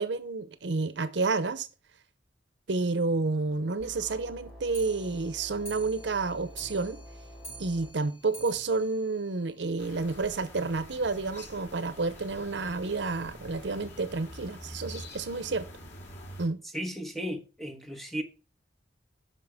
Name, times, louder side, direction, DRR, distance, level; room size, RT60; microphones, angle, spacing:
voice 1, 0.0-1.7 2.7-7.0 7.6-15.7 16.4-16.6, right 3 dB, 85° right, 0.8 m, -30 dB
sound 1, 3.8-7.9, equal, 60° left, 5.6 m, -48 dB
Clock, 4.7-10.2 10.5-10.6 10.9-11.0 11.3-11.4 11.6-11.7 12.4-12.5 13.2-13.3 14.0-14.1, right 2 dB, 35° left, 1.7 m, -49 dB
sound 2, 9.8-16.5, left 1 dB, 90° left, 2.6 m, -46 dB
voice 2, 16.7-18.2, equal, ahead, 1.2 m, -35 dB
9.3 x 6.1 x 3.6 m
head